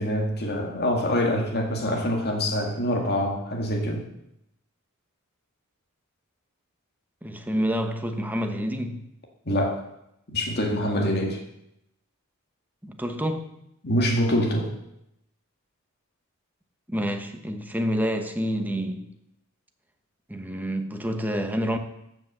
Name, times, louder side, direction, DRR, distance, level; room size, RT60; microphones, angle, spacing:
voice 1, 0.0-4.0 9.5-9.8 10.3-11.4 13.8-14.7, equal, 50° left, 2.0 m, -25 dB
voice 2, 7.2-9.0 12.8-13.5 16.9-19.1 20.3-21.8, equal, 10° right, 1.1 m, -28 dB
14.5 x 6.1 x 6.8 m
head